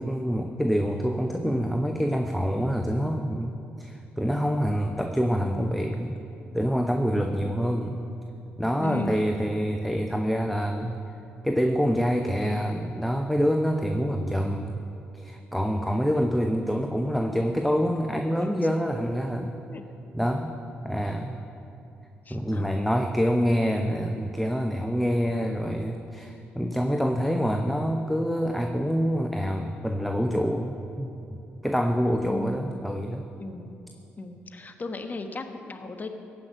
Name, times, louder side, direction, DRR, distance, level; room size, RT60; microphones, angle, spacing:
voice 1, 0.0-3.5 3.8-6.2 6.5-8.1 8.6-11.0 11.4-14.8 15.1-19.6 20.1-20.5 20.8-21.5 22.3-31.1 31.6-33.3, equal, ahead, 4 dB, 0.8 m, -26 dB
voice 2, 8.8-9.3 19.7-19.8 22.2-22.8 32.3-32.8 33.4-33.8 34.2-36.1, left 3 dB, 40° left, 6 dB, 1.3 m, -36 dB
15.0 x 5.9 x 9.0 m, 2.9 s
supercardioid pair, 55°, 5 cm